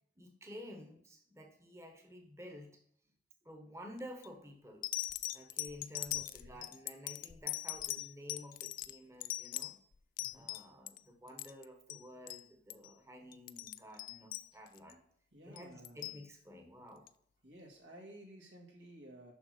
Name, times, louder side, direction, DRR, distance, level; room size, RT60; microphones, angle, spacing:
voice 1, 0.2-2.8 3.4-4.9 5.3-9.8 10.3-15.0 15.4-17.0, left 1 dB, 15° right, 3 dB, 1.2 m, -51 dB
sound 1, 4.0-4.3 4.8-11.0 11.3-12.0 12.3-12.4 12.7-12.9 13.3-14.9 15.6-16.2 17.1-17.2, left 15 dB, 45° left, 0.3 m, -41 dB
voice 2, 6.1-6.6 10.2-10.5 15.3-16.2 17.4-19.3, right 1 dB, 75° right, -2 dB, 2.6 m, -55 dB
7.0 x 6.1 x 6.5 m, 0.66 s
head